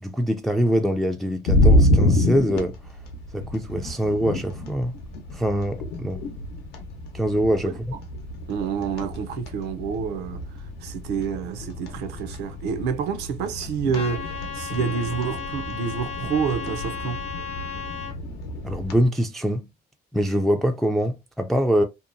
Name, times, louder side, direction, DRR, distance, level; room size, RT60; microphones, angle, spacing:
voice 1, 0.0-2.8 3.3-4.9 5.3-6.2 7.1-7.8 18.6-19.7 20.1-21.8, equal, ahead, 0.3 m, -23 dB
sound 1, 1.4-19.0, left 1 dB, 80° left, 0.7 m, -27 dB
voice 2, 8.5-10.4 10.8-17.2, right 6 dB, 85° right, 0.6 m, -28 dB
Trumpet, 13.9-18.1, left 6 dB, 35° left, 0.7 m, -35 dB
2.7 x 2.1 x 2.5 m
cardioid pair, 110°, 17 cm